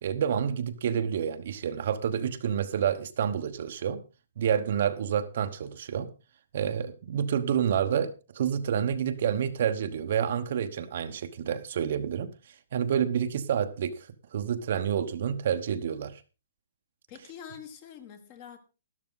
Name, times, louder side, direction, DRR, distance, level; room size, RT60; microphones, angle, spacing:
voice 1, 0.0-4.0 4.4-6.1 6.5-12.3 12.7-16.2, right 8 dB, 45° right, 1.1 m, -29 dB
voice 2, 17.1-18.6, left 8 dB, 25° left, 1.6 m, -45 dB
12.5 x 12.5 x 3.9 m
hypercardioid pair, 175°, 0 cm